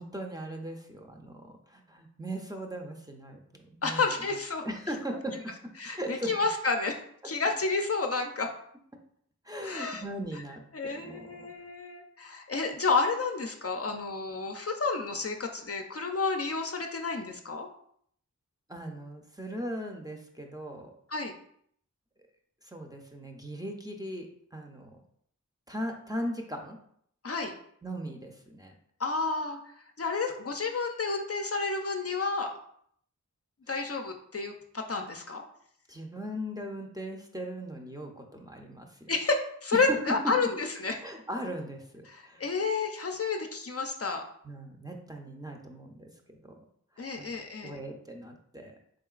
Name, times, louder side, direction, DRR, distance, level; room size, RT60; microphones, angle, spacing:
voice 1, 0.0-4.3 4.6-5.5 6.0-6.3 9.4-11.5 18.7-20.9 22.6-25.0 25.7-26.8 27.8-28.7 33.7-33.8 35.9-39.1 39.9-40.1 41.0-42.5 44.4-46.1 46.4-46.6 47.0-47.4 47.6-48.8, equal, 10° right, 1 dB, 0.5 m, -39 dB
voice 2, 3.8-4.6 5.8-7.0 7.2-8.5 9.6-10.0 10.7-17.7 21.1-21.4 27.2-27.5 29.0-29.6 30.0-32.5 33.7-35.4 39.1-41.0 42.1-44.2 47.0-47.8, left 4 dB, 50° left, 4 dB, 0.4 m, -30 dB
3.7 x 3.7 x 2.4 m, 0.66 s
wide cardioid pair, 60°, 32 cm